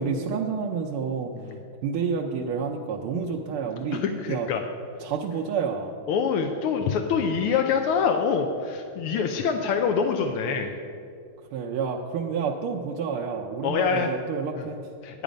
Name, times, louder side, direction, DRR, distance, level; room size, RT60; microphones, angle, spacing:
voice 1, 0.0-1.3 1.8-4.0 4.3-4.5 5.0-5.9 11.5-14.9, right 6 dB, 80° right, 0 dB, 1.5 m, -29 dB
voice 2, 3.9-4.6 6.1-10.7 13.6-14.1 14.6-14.7 15.0-15.2, left 6 dB, 90° left, 4 dB, 1.6 m, -25 dB
10.0 x 9.9 x 5.1 m, 2.5 s
omnidirectional pair, 2.4 m